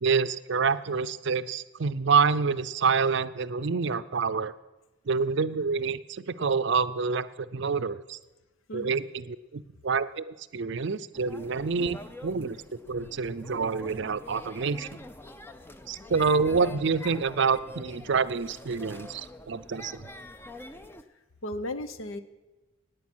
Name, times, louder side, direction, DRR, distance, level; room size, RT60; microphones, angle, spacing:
voice 1, 0.0-4.5 5.1-8.2 8.7-12.6 12.9-15.0 15.9-20.1, right 5 dB, 55° right, 14 dB, 0.5 m, -27 dB
sound 1, 11.1-21.0, left 1 dB, 10° left, 0.5 m, -45 dB
voice 2, 21.4-22.2, left 1 dB, 70° left, 11 dB, 0.9 m, -35 dB
17.0 x 9.4 x 6.2 m, 1.1 s
head